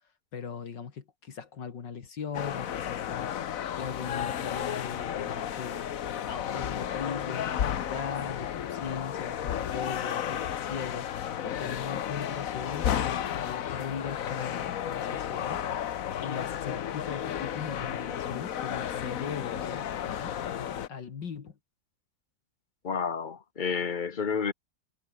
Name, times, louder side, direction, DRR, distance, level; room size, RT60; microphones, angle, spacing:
voice 1, 0.3-3.3 3.8-5.9 6.3-15.7 16.2-21.6, left 6 dB, 75° left, 2.6 m, -39 dB
sound 1, 2.3-20.9, left 10 dB, 55° left, 1.2 m, -33 dB
voice 2, 22.8-24.5, left 6 dB, 30° left, 1.1 m, -30 dB
omnidirectional pair, 1.9 m